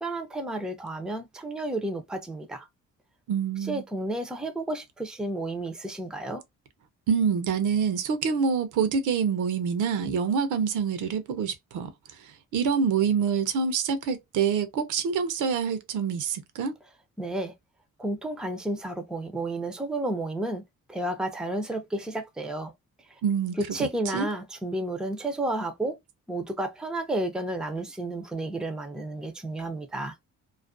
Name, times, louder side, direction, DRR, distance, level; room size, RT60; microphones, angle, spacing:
voice 1, 0.0-2.7 3.6-6.4 17.2-17.5 18.0-20.6 20.9-22.7 23.6-26.0 26.3-30.2, right 1 dB, ahead, 0.4 m, -31 dB
voice 2, 3.3-3.8 7.1-11.9 12.2-16.7 23.2-23.6 24.1-24.3, right 6 dB, 80° right, 0.6 m, -26 dB
2.4 x 2.2 x 2.4 m
cardioid pair, 90°, 30 cm